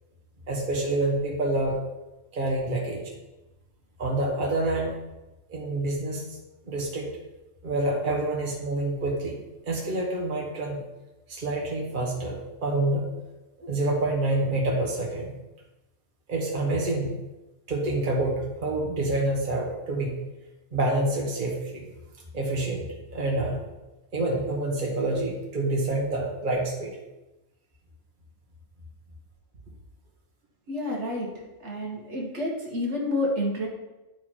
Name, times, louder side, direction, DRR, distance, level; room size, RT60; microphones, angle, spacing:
voice 1, 0.5-1.8 2.3-3.0 4.0-4.9 5.5-6.2 6.6-7.1 7.6-9.4 9.7-10.8 11.3-13.0 13.6-15.3 16.3-17.1 17.7-20.2 20.7-21.9 22.3-22.8 23.1-23.6 24.1-26.9, right 2 dB, 40° right, -2 dB, 1.6 m, -27 dB
voice 2, 30.7-31.3 31.6-33.7, left 1 dB, 65° right, -2 dB, 1.8 m, -29 dB
10.5 x 4.7 x 4.5 m, 1.0 s
omnidirectional pair, 1.3 m